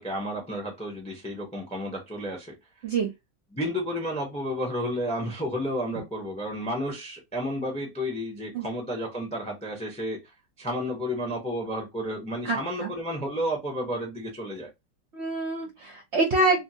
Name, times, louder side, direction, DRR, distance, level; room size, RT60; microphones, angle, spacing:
voice 1, 0.0-2.6 3.5-10.2 10.6-14.7, equal, 10° left, 0.4 m, -31 dB
voice 2, 12.5-12.9 15.1-16.6, right 2 dB, 60° right, 0.7 m, -26 dB
2.7 x 2.7 x 2.7 m
omnidirectional pair, 1.9 m